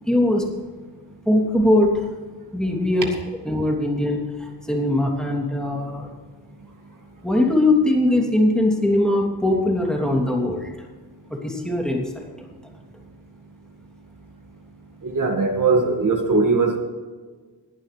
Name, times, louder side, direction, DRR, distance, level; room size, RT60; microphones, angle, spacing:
voice 1, 0.0-0.5 1.2-2.2 2.5-3.1 3.4-6.1 7.2-10.7 11.3-12.5, left 1 dB, ahead, -1 dB, 2.9 m, -21 dB
voice 2, 15.0-16.8, right 3 dB, 50° right, 2 dB, 2.0 m, -20 dB
20.5 x 11.0 x 3.4 m, 1.4 s
wide cardioid pair, 130°, 40 cm